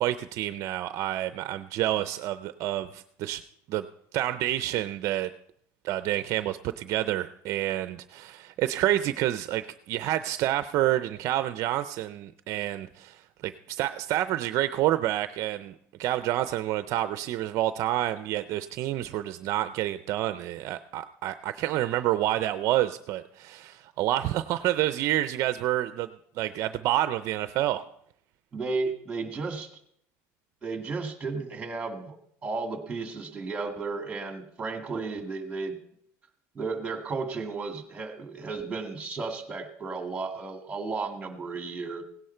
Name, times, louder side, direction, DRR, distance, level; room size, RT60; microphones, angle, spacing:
voice 1, 0.0-3.4 3.7-3.9 4.1-5.3 5.8-15.7 16.0-26.1 26.4-27.8, right 14 dB, 55° right, 12 dB, 0.5 m, -28 dB
voice 2, 28.5-29.7 30.6-32.2 32.4-35.8 36.6-42.0, right 4 dB, 15° right, 6 dB, 2.0 m, -33 dB
17.0 x 10.5 x 4.4 m, 0.69 s
cardioid pair, 140°, 6 cm